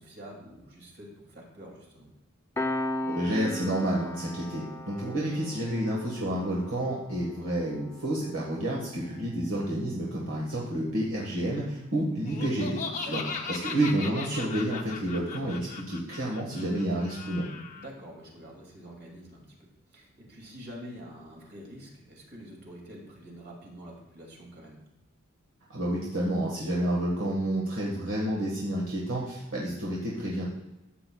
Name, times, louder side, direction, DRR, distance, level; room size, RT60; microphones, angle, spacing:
voice 1, 0.0-2.1 13.0-13.4 17.8-19.5 19.9-24.8, equal, 50° right, -1 dB, 2.5 m, -46 dB
Piano, 2.6-13.6, left 1 dB, 10° left, 0.5 m, -39 dB
voice 2, 3.1-12.8 13.1-13.2 13.5-17.4 25.7-30.5, right 1 dB, 65° right, -4 dB, 1.6 m, -29 dB
Laughter, 12.3-17.9, left 5 dB, 35° left, 0.8 m, -38 dB
13.0 x 7.7 x 2.3 m, 1.0 s
head